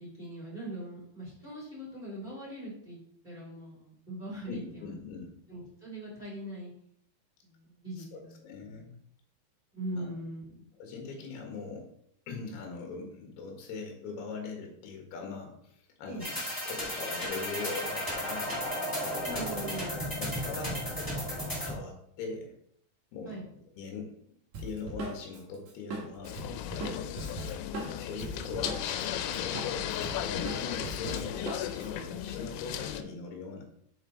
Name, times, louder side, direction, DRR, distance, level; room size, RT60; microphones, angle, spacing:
voice 1, 0.0-4.9 5.5-6.7 7.4-8.9 9.7-10.7 16.1-16.3 19.2-19.9 23.2-23.4, right 1 dB, 10° right, -7 dB, 2.5 m, -41 dB
voice 2, 4.5-5.3 8.0-8.9 9.9-10.1 10.8-11.9 12.3-15.7 16.0-16.4 16.7-18.6 19.3-21.1 21.6-22.5 23.1-23.4 23.7-24.1 24.6-26.4 26.7-27.1 28.0-33.6, left 4 dB, 60° left, 1 dB, 3.2 m, -41 dB
sound 1, 16.2-21.8, equal, 15° left, 0.6 m, -34 dB
Drum kit, 24.5-29.1 29.3-31.9, right 2 dB, 85° right, 1.6 m, -39 dB
sound 2, 26.2-33.0, left 11 dB, 90° left, 3.2 m, -35 dB
6.9 x 5.8 x 4.1 m, 0.68 s
omnidirectional pair, 5.8 m